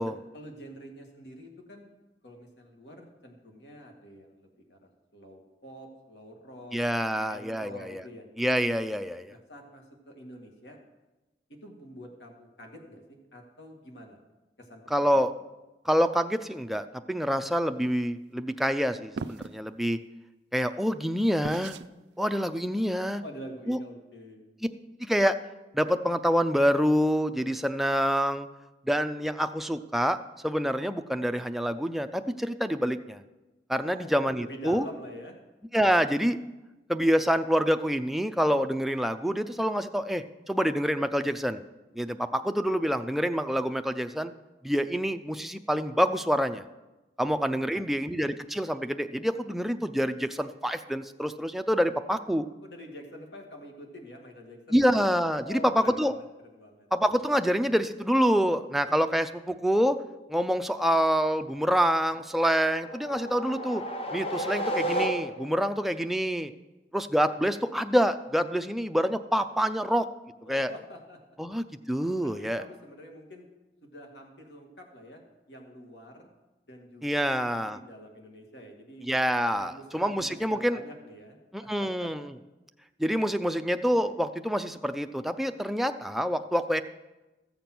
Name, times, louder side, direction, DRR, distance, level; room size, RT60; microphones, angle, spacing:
voice 1, 0.3-1.9 2.2-6.8 7.1-8.2 9.3-10.8 11.5-14.2 14.6-15.3 23.2-24.4 33.8-35.4 52.6-54.9 55.3-56.9 70.5-71.2 72.2-73.4 73.8-75.2 75.5-76.3 76.7-79.1 79.6-82.3, equal, 75° left, 2 dB, 2.0 m, -47 dB
voice 2, 6.7-8.0 8.4-9.3 14.9-15.3 15.9-20.0 20.5-21.8 22.2-23.2 23.7-23.8 25.0-25.4 25.7-28.5 28.9-30.2 30.4-33.2 33.7-34.9 35.7-36.4 36.9-41.6 41.9-44.3 44.6-46.6 47.2-52.5 54.7-56.1 56.9-60.0 60.3-63.8 64.1-66.5 66.9-70.1 70.5-70.7 71.4-72.6 77.0-77.8 79.0-80.8 81.5-82.3 83.0-86.8, equal, ahead, 8 dB, 0.4 m, -26 dB
sound 1, 19.2-19.6 21.4-21.9, right 4 dB, 75° right, 0.4 m, -37 dB
sound 2, 62.6-65.7, right 1 dB, 35° left, 0.9 m, -32 dB
14.5 x 7.0 x 6.0 m, 1.1 s
head